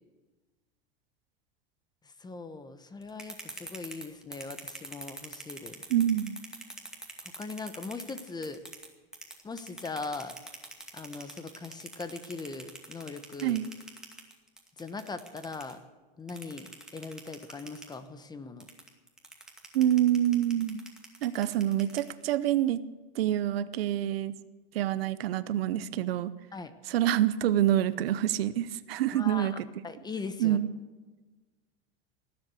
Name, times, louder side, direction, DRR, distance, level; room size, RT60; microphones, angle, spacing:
voice 1, 2.2-5.8 7.2-8.6 9.4-10.3 10.9-13.6 14.8-15.8 16.2-18.7 26.5-26.7 29.1-29.6 29.8-30.6, left 4 dB, 15° left, 11 dB, 1.1 m, -40 dB
sound 1, 3.0-8.9 9.1-15.7 16.3-17.9 18.6-22.3, right 2 dB, ahead, 2.3 m, -44 dB
voice 2, 5.9-6.4 13.4-13.7 19.7-20.8 21.2-22.8 23.2-24.4 24.7-26.3 26.9-29.7 30.4-30.7, right 12 dB, 85° right, 15 dB, 0.8 m, -26 dB
19.0 x 7.9 x 8.3 m, 1.3 s
supercardioid pair, 125°, 29 cm